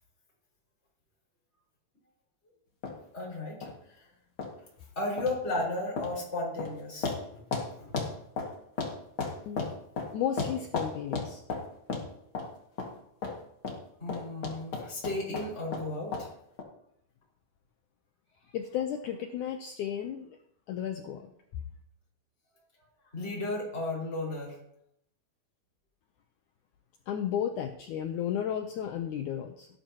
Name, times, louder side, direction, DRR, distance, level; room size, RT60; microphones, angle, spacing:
sound 1, 2.8-2.9 3.6-3.7 4.4-4.5 5.2-5.4 6.0-6.1 6.6-6.7 7.0-7.2 7.5-7.7 7.9-8.9 9.2-10.1 10.4-11.6 11.9-12.1 12.3-12.5 12.8-12.9 13.2-13.4 13.6-13.8 14.1-15.8 16.1-16.3 16.6-16.7, left 4 dB, 40° left, 2.3 m, -33 dB
voice 1, 3.1-3.7 5.0-7.4 7.9-8.0 14.0-16.3 23.1-24.5, left 2 dB, 15° left, -4 dB, 5.2 m, -34 dB
voice 2, 10.1-11.4 18.5-20.4 20.7-21.3 27.1-29.7, left 9 dB, 80° left, 6 dB, 1.8 m, -33 dB
17.5 x 11.5 x 2.9 m, 0.74 s
omnidirectional pair, 4.4 m